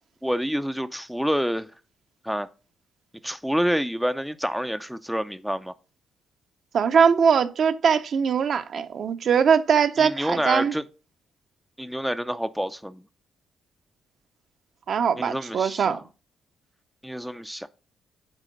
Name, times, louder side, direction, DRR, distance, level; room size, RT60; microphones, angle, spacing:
voice 1, 0.2-1.7 2.2-2.5 3.2-5.7 10.0-10.8 11.8-13.0 15.2-16.0 17.0-17.7, equal, ahead, 0.5 m, -27 dB
voice 2, 6.7-10.7 14.9-16.0, right 6 dB, 60° right, 0.7 m, -21 dB
9.0 x 3.7 x 5.1 m
cardioid pair, 90°, 0 cm